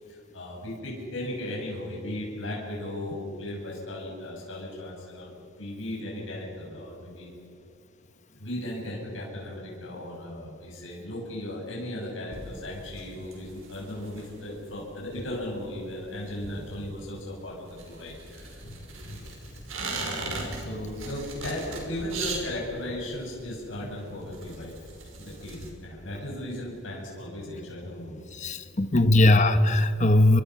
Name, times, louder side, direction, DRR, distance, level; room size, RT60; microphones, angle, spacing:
voice 1, 0.3-7.3 8.3-18.6 20.6-24.7 25.2-28.2 28.5-28.6, left 1 dB, 65° left, -3 dB, 6.7 m, -36 dB
sound 1, 12.3-25.7, right 3 dB, 80° right, 5.7 m, -39 dB
voice 2, 28.4-30.4, left 1 dB, 35° left, 9 dB, 1.1 m, -20 dB
28.5 x 23.5 x 5.8 m, 2.5 s
head